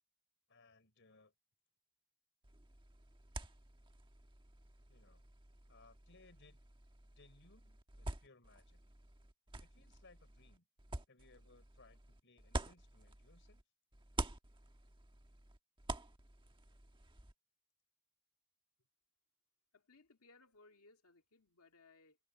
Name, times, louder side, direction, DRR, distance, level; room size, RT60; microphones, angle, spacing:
voice 1, 0.5-1.3 4.9-5.2 5.7-6.6 7.1-8.8 9.6-10.6 11.1-13.6, left 3 dB, 55° left, 4.7 m, -66 dB
sound 1, 2.4-13.6 13.9-17.3, right 2 dB, 25° right, 1.4 m, -48 dB
voice 2, 19.7-22.2, left 3 dB, 80° left, 2.5 m, -65 dB
head